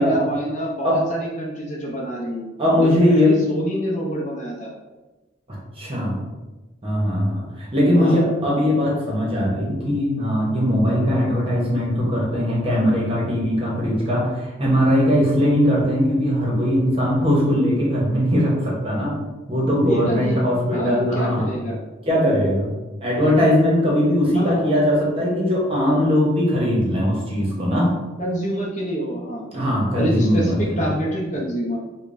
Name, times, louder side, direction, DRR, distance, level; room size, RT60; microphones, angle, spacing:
voice 1, 0.0-2.5 2.8-4.7 7.9-8.2 19.7-21.8 24.3-24.7 28.2-29.4 29.9-31.8, equal, 40° left, -3 dB, 0.6 m, -26 dB
voice 2, 2.6-3.3 5.8-6.2 6.8-19.1 19.5-21.5 22.1-22.7 23.0-27.9 29.5-30.9, equal, 30° right, -4 dB, 0.9 m, -20 dB
5.0 x 2.2 x 2.5 m, 1.2 s
head